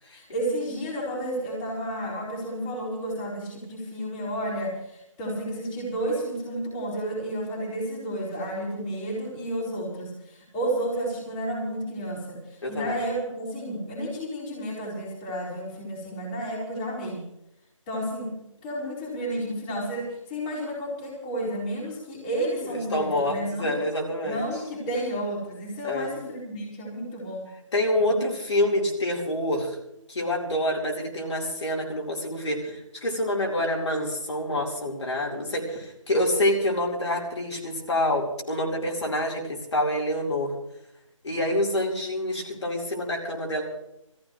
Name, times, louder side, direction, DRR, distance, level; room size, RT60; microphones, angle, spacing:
voice 1, 0.1-12.4 12.7-17.2 17.9-18.4 18.6-23.8 24.2-27.5 28.0-28.2, right 1 dB, 15° left, -4 dB, 4.3 m, -31 dB
voice 2, 12.6-12.9 22.9-24.4 25.8-26.1 27.7-29.8 30.1-40.5 41.2-43.6, left 1 dB, 55° left, -2 dB, 4.4 m, -27 dB
24.5 x 15.5 x 3.2 m, 0.83 s
figure-of-eight pair, 155°, 17 cm